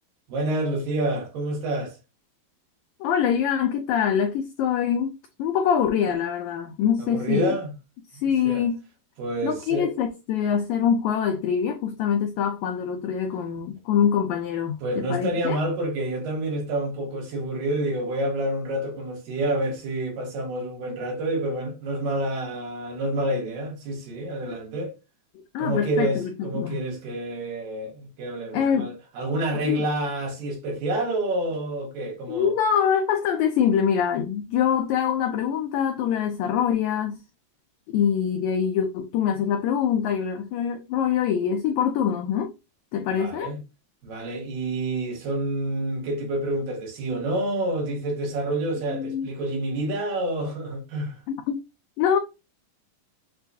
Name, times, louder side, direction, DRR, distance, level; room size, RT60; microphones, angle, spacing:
voice 1, 0.3-2.0 7.0-7.7 8.4-8.6 9.2-9.9 14.8-24.9 25.6-32.5 43.2-43.6 44.0-51.2, right 1 dB, 75° right, 3.2 m, -28 dB
voice 2, 3.0-7.6 8.2-8.7 9.4-15.6 25.5-26.8 28.5-28.9 29.6-29.8 32.3-37.1 37.9-42.5 42.9-43.5 48.9-49.3 51.3-51.6 52.0-52.2, left 8 dB, 85° left, 1.6 m, -24 dB
6.6 x 2.3 x 2.6 m
omnidirectional pair, 3.9 m